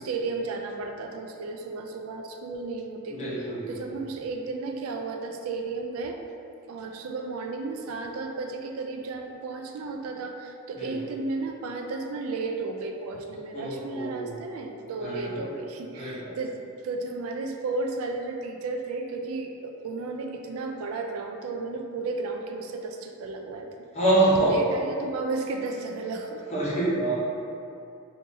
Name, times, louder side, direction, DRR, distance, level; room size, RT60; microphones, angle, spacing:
voice 1, 0.0-6.2 6.7-23.7 24.4-26.4, right 3 dB, 80° right, 4 dB, 0.3 m, -33 dB
voice 2, 3.1-3.7 10.8-11.1 13.5-14.3 15.0-15.4 15.9-16.4 23.9-24.6 26.5-27.2, right 2 dB, 30° left, -9 dB, 0.9 m, -26 dB
2.7 x 2.6 x 3.8 m, 2.6 s
head